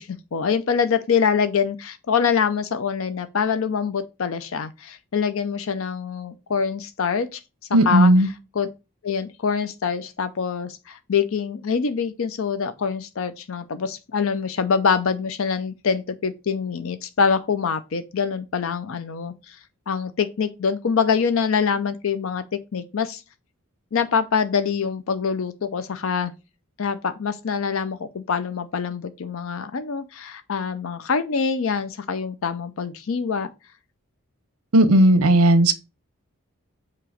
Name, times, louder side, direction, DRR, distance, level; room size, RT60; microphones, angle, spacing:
voice 1, 0.0-7.4 7.9-8.1 8.5-8.7 9.0-19.6 19.9-22.4 22.7-23.2 23.9-26.3 26.8-33.5, left 6 dB, 65° left, 0.5 m, -25 dB
voice 2, 7.7-8.3 34.7-35.7, right 1 dB, 75° right, 0.8 m, -15 dB
7.4 x 3.0 x 4.9 m
head